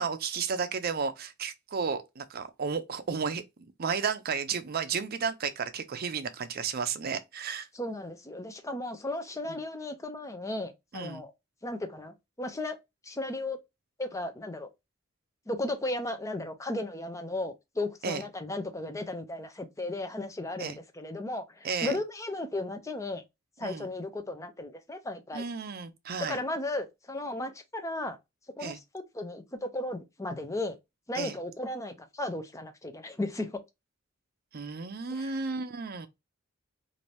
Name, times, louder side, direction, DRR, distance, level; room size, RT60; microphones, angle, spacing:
voice 1, 0.0-3.4 3.8-7.7 9.5-9.6 10.9-11.2 18.0-18.2 20.6-20.8 21.6-22.0 23.6-23.9 25.3-26.4 28.6-28.8 31.1-31.4 34.5-36.1, right 5 dB, 50° right, 0.5 m, -33 dB
voice 2, 7.7-11.3 11.6-12.8 13.0-13.6 14.0-14.7 15.5-23.2 23.6-25.4 26.3-28.2 28.6-30.8 31.1-33.6 35.1-35.4, left 2 dB, 15° left, 0.5 m, -35 dB
2.8 x 2.6 x 3.1 m
head